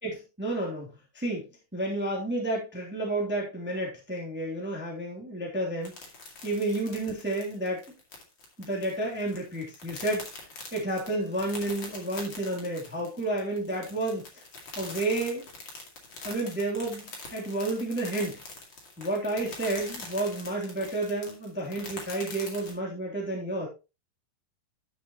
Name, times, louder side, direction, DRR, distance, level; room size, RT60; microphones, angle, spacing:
voice 1, 0.0-1.4 1.7-5.9 6.4-7.8 8.7-10.2 10.7-14.2 14.8-15.5 16.2-18.4 19.0-23.7, right 2 dB, 5° right, -2 dB, 2.3 m, -31 dB
sound 1, 5.8-22.7, left 3 dB, 35° left, 2.5 m, -43 dB
12.5 x 6.5 x 3.0 m, 0.28 s
omnidirectional pair, 4.6 m